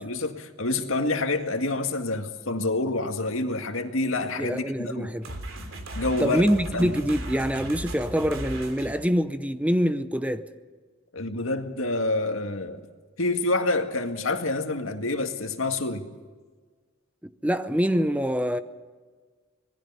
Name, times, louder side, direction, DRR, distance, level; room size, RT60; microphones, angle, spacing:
voice 1, 0.0-5.1 6.0-6.4 6.7-6.9 11.1-12.8 13.2-16.1, left 2 dB, 90° left, 2.0 m, -27 dB
voice 2, 4.4-5.3 6.2-10.5 17.4-18.6, equal, 5° right, 0.7 m, -25 dB
sound 1, 5.2-9.0, right 1 dB, 80° right, 3.3 m, -36 dB
26.5 x 19.5 x 5.7 m
head